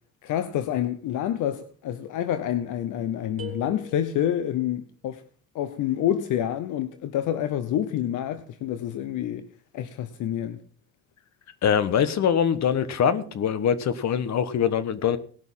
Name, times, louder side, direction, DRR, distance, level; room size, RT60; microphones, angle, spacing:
voice 1, 0.2-5.2 5.5-9.5 9.7-10.6, left 11 dB, 85° left, 0.9 m, -28 dB
sound 1, 3.4-4.6, right 1 dB, 45° right, 3.3 m, -42 dB
voice 2, 11.6-15.2, left 8 dB, 65° left, 1.3 m, -23 dB
18.5 x 6.4 x 5.5 m
cardioid pair, 90°, 30 cm